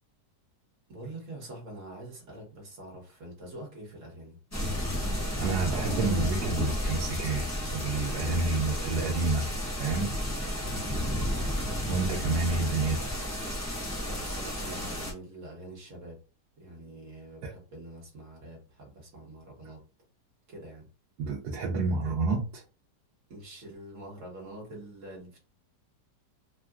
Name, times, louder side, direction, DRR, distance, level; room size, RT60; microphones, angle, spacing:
voice 1, 0.9-4.4 10.8-11.1 14.0-16.2 16.6-19.8 20.5-20.9 23.3-25.4, right 1 dB, 50° right, -2 dB, 1.4 m, -45 dB
sound 1, 4.5-15.1, equal, 15° left, 0.6 m, -32 dB
voice 2, 5.4-7.5 7.7-9.5 9.8-10.1 11.9-13.3 17.4-17.5 21.2-22.6, right 3 dB, 75° right, -2 dB, 1.2 m, -29 dB
3.6 x 2.2 x 2.3 m, 0.34 s
omnidirectional pair, 1.8 m